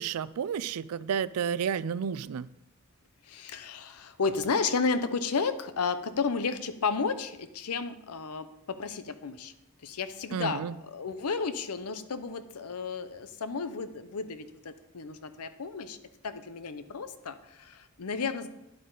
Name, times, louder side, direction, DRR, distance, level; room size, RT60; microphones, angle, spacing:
voice 1, 0.0-2.5 10.3-10.7, right 7 dB, 80° right, 18 dB, 0.4 m, -31 dB
voice 2, 3.3-8.5 8.8-9.5 9.8-16.0 16.2-18.5, left 5 dB, 85° left, 11 dB, 0.7 m, -32 dB
10.0 x 8.1 x 3.9 m, 0.87 s
head